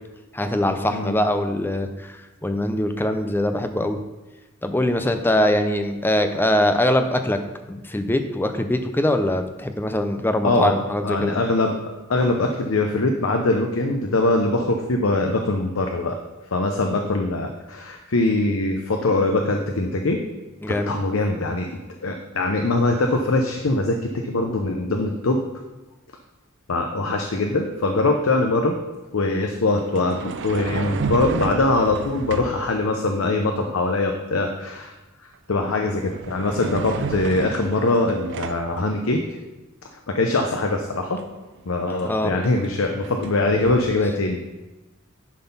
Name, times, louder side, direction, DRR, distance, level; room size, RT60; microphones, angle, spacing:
voice 1, 0.3-4.0 4.6-7.4 7.7-11.3 20.6-21.0 42.0-42.3, left 1 dB, 10° left, 7 dB, 0.5 m, -22 dB
voice 2, 11.0-11.7 12.1-16.2 16.5-20.2 20.7-21.7 22.0-25.4 26.7-28.8 29.1-34.9 35.5-39.2 40.1-41.2 41.7-44.6, left 2 dB, 70° left, 4 dB, 0.7 m, -22 dB
sound 1, 27.5-27.7 29.8-32.7 35.3-35.6 35.9-38.7 41.2-41.3 41.6-43.9, right 4 dB, 60° right, 0.4 m, -32 dB
10.5 x 4.1 x 5.5 m, 1.1 s
head